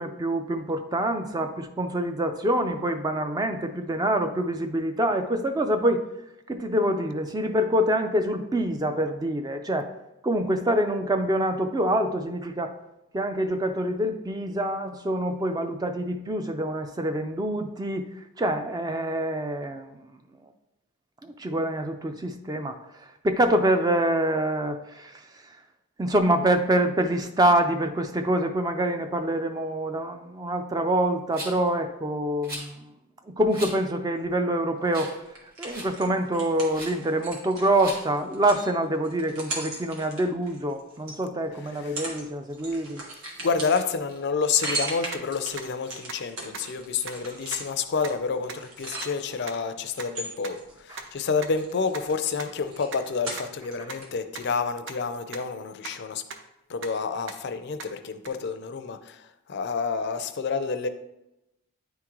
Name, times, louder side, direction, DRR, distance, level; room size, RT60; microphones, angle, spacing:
voice 1, 0.0-6.0 6.5-9.9 10.2-12.8 13.1-18.1 18.4-20.0 21.2-22.7 23.2-25.2 26.0-32.9 33.4-35.1 35.6-43.0 50.9-51.1, right 1 dB, 15° right, 7 dB, 0.3 m, -26 dB
Rattle, 31.3-31.7 32.4-32.7 33.5-33.7 34.2-34.3 34.9-35.2 35.5-35.9 36.7-36.9 37.7-38.0, right 1 dB, 40° right, 2.0 m, -38 dB
sound 1, 35.3-41.2 41.7-42.2 42.5-49.4 49.9-51.2 51.5-53.7 54.0-54.1, right 2 dB, 85° right, 1.5 m, -37 dB
voice 2, 43.4-56.2 56.7-60.9, left 5 dB, 50° left, 9 dB, 0.4 m, -29 dB
sound 2, 45.1-45.2 45.6-45.7 46.1-46.2 46.5-46.6 47.1-47.2 47.5-47.6 48.0-48.1 48.5-48.6 49.0-49.1 49.5-49.6 50.0-50.1 50.4-50.5 51.0-51.1 51.4-51.5 51.9-52.0 52.4-52.5 52.9-53.0 53.4-53.5 53.9-54.0 54.3-54.4 54.9-55.0 55.3-55.4 55.8-55.9 56.3-56.4 56.8-56.9 57.3-57.4 57.8-57.9 58.2-58.3, right 5 dB, 60° right, 0.6 m, -37 dB
9.4 x 3.7 x 3.0 m, 0.90 s
head